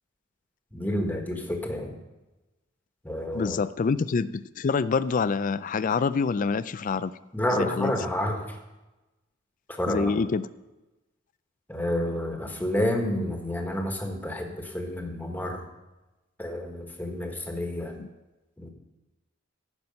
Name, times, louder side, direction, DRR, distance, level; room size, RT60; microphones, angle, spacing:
voice 1, 0.7-1.9 3.0-3.6 7.3-8.6 9.7-10.1 11.7-15.6 16.4-17.9 18.6-18.7, left 1 dB, 10° left, 2 dB, 1.4 m, -29 dB
voice 2, 3.3-7.1 7.5-7.9 9.9-10.5 18.0-18.1, left 5 dB, 40° left, 16 dB, 0.4 m, -26 dB
15.0 x 6.1 x 5.3 m, 1.1 s
head